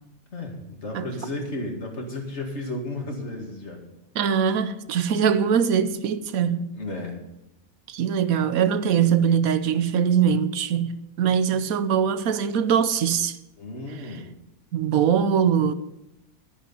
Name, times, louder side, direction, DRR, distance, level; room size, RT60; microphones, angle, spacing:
voice 1, 0.3-3.8 6.7-7.2 13.6-14.3, left 2 dB, 50° left, 2.4 m, -33 dB
voice 2, 4.1-6.7 7.9-13.4 14.7-15.7, right 7 dB, 80° right, 1.2 m, -22 dB
12.0 x 9.9 x 5.5 m
omnidirectional pair, 1.5 m